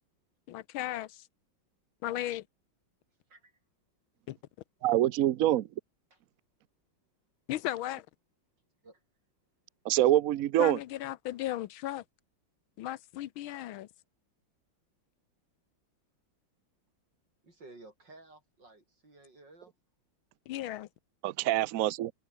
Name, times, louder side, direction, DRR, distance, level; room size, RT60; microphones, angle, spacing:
voice 1, 0.5-1.3 2.0-2.4 4.3-4.4 7.5-8.1 10.6-12.0 12.8-13.9 20.5-20.9, left 14 dB, 80° left, 1.6 m, -36 dB
voice 2, 4.8-5.7 9.8-10.8 21.2-22.1, right 13 dB, 80° right, 0.7 m, -25 dB
voice 3, 17.4-19.7, right 2 dB, 60° right, 7.4 m, -54 dB
omnidirectional pair, 2.2 m